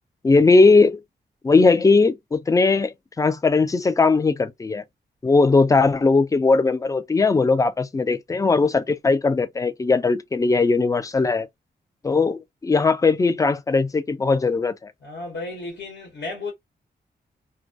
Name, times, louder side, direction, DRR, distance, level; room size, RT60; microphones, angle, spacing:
voice 1, 0.2-1.0 1.4-4.8 5.2-11.5 12.0-14.9, left 3 dB, 20° left, 0.3 m, -19 dB
voice 2, 15.0-16.5, left 3 dB, 75° left, 1.1 m, -33 dB
2.2 x 2.2 x 2.5 m
cardioid pair, 75°, 18 cm